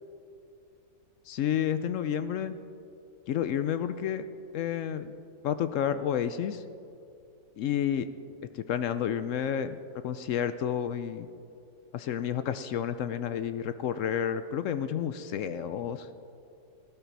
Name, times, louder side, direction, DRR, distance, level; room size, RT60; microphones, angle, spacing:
voice 1, 1.3-2.5 3.3-4.3 4.5-5.2 5.4-6.6 7.6-8.1 8.5-9.8 10.0-11.3 11.9-16.1, left 9 dB, 70° left, 11 dB, 0.7 m, -30 dB
16.0 x 12.0 x 4.6 m, 2.6 s
omnidirectional pair, 1.8 m